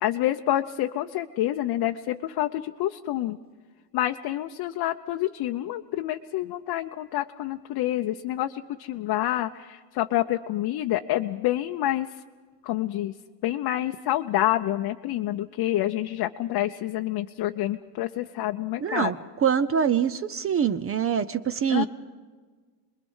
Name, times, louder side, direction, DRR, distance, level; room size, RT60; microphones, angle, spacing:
voice 1, 0.0-3.4 3.9-12.1 12.7-13.1 13.4-19.1 21.7-21.9, left 14 dB, 50° left, 5 dB, 0.7 m, -28 dB
voice 2, 18.8-21.9, right 8 dB, 30° right, 14 dB, 0.6 m, -24 dB
27.5 x 21.5 x 5.5 m, 1.5 s
cardioid pair, 140°, 47 cm